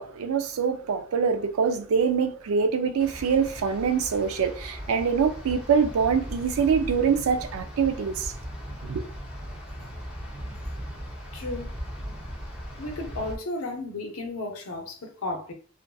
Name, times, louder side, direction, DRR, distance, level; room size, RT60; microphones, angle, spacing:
voice 1, 0.0-8.3 8.8-9.1, right 6 dB, 90° right, 0.4 m, -24 dB
sound 1, 3.0-13.4, equal, 5° right, 0.5 m, -38 dB
voice 2, 11.3-11.7 12.8-15.5, left 2 dB, 85° left, 0.6 m, -33 dB
2.5 x 2.5 x 2.2 m
head